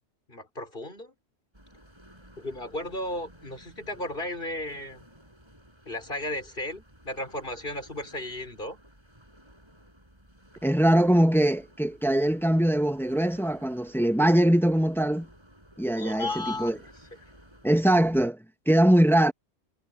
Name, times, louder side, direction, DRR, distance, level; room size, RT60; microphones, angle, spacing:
voice 1, 0.3-1.1 2.4-5.0 5.9-8.8 15.9-16.7, left 1 dB, 50° left, 5.8 m, -34 dB
sound 1, 1.5-18.3, equal, 25° right, 7.6 m, -55 dB
voice 2, 10.6-15.3 15.8-16.8 17.6-18.4 18.7-19.3, right 1 dB, ahead, 1.2 m, -22 dB
omnidirectional pair, 1.2 m